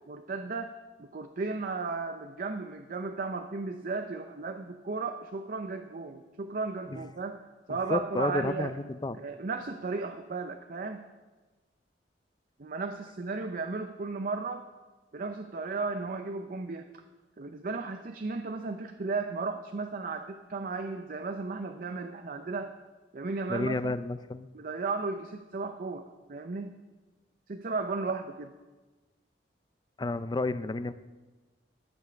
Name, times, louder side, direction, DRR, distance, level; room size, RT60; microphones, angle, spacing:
voice 1, 0.1-8.7 9.1-11.0 12.6-14.7 15.1-16.9 17.4-22.7 23.1-23.9 24.5-26.8 27.5-28.5, right 3 dB, 50° right, 6 dB, 0.6 m, -35 dB
voice 2, 7.9-9.2 23.5-24.5 30.0-30.9, left 2 dB, 25° left, 14 dB, 0.4 m, -31 dB
12.5 x 7.2 x 6.6 m, 1.3 s
head